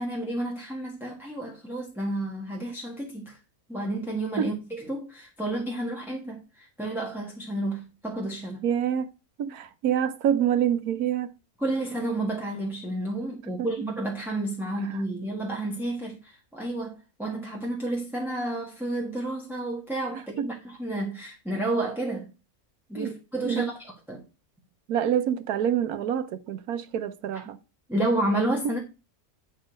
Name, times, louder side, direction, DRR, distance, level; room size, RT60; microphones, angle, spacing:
voice 1, 0.0-3.4 3.7-8.6 11.6-22.3 22.9-24.2 27.9-28.8, right 1 dB, ahead, 1.3 m, -31 dB
voice 2, 8.6-9.1 9.4-11.3 13.6-13.7 20.4-20.5 22.9-23.1 23.4-23.7 24.9-27.6, right 9 dB, 85° right, 1.3 m, -26 dB
9.6 x 4.2 x 5.1 m
omnidirectional pair, 1.5 m